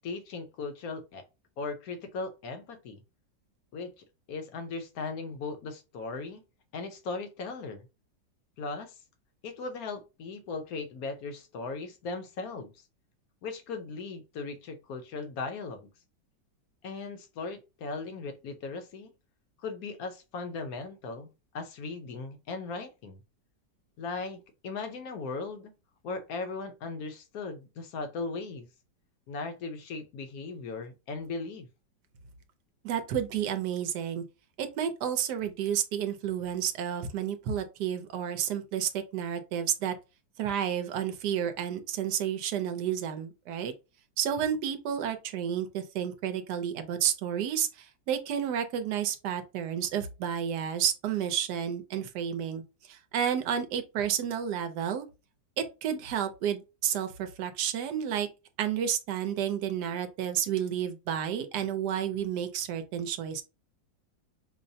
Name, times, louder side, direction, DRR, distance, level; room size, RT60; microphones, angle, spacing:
voice 1, 0.0-1.2 1.6-3.0 3.7-6.4 6.7-7.9 8.6-9.0 9.4-12.7 13.4-15.9 16.8-19.1 19.6-23.2 24.0-25.7 26.0-28.7 29.3-31.7, left 4 dB, 65° left, 1.0 m, -38 dB
voice 2, 32.8-34.2 34.6-39.9 40.4-43.7 44.2-55.0 55.6-58.3 58.6-63.4, right 9 dB, 70° right, 1.1 m, -31 dB
5.5 x 2.0 x 2.6 m
omnidirectional pair, 2.0 m